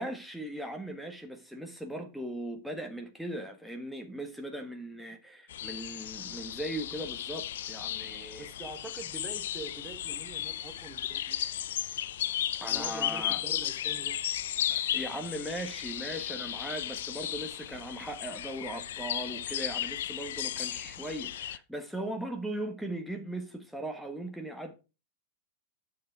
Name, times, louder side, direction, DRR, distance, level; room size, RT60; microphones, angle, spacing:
voice 1, 0.0-8.5 12.6-13.4 14.7-24.7, right 1 dB, ahead, 1.4 m, -38 dB
sound 1, 5.5-21.6, left 11 dB, 60° left, 0.5 m, -35 dB
voice 2, 8.4-11.6 12.6-14.2, right 3 dB, 15° right, 1.5 m, -45 dB
10.0 x 6.8 x 4.9 m
figure-of-eight pair, 90°, 0 cm